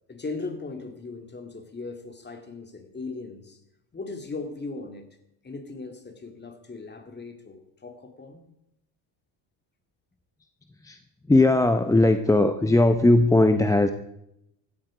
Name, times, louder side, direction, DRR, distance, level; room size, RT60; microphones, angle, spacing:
voice 1, 0.1-3.6 3.9-5.1 5.4-8.4, left 3 dB, 25° left, 6 dB, 2.3 m, -38 dB
voice 2, 11.3-13.9, left 2 dB, 5° left, 8 dB, 0.6 m, -19 dB
16.0 x 14.0 x 4.9 m, 0.82 s
cardioid pair, 110°, 45 cm